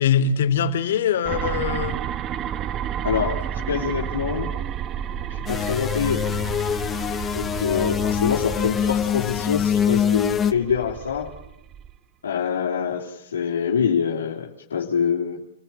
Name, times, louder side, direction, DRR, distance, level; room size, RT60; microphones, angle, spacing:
voice 1, 0.0-2.0 6.9-7.3, left 7 dB, 70° left, 9 dB, 3.2 m, -23 dB
sound 1, 1.2-12.0, right 9 dB, 30° right, 0.9 m, -31 dB
voice 2, 3.0-4.5 5.3-6.3 7.3-11.3 12.2-15.4, left 7 dB, 85° left, -2 dB, 3.5 m, -25 dB
sound 2, 5.5-10.5, left 8 dB, 20° left, 1.1 m, -24 dB
28.5 x 16.0 x 9.0 m, 0.88 s
hypercardioid pair, 125°, 0 cm